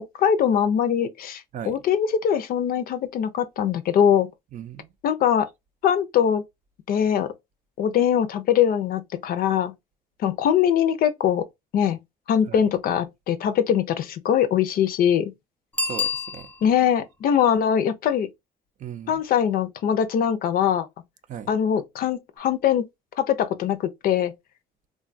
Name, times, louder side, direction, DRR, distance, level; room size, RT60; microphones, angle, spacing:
voice 1, 0.0-4.3 5.0-5.5 5.8-6.4 6.9-7.3 7.8-9.7 10.2-11.5 11.7-12.0 12.3-15.3 16.6-18.3 19.1-20.9 21.5-22.8 23.2-24.3, left 9 dB, 60° left, 0.5 m, -22 dB
voice 2, 4.5-4.9 12.5-12.6 15.8-16.5 18.8-19.2 21.3-21.6, right 9 dB, 50° right, 0.4 m, -37 dB
Bicycle bell, 15.7-16.9 22.4-22.5, left 4 dB, 10° left, 0.5 m, -28 dB
3.4 x 2.2 x 2.4 m
cardioid pair, 110°, 17 cm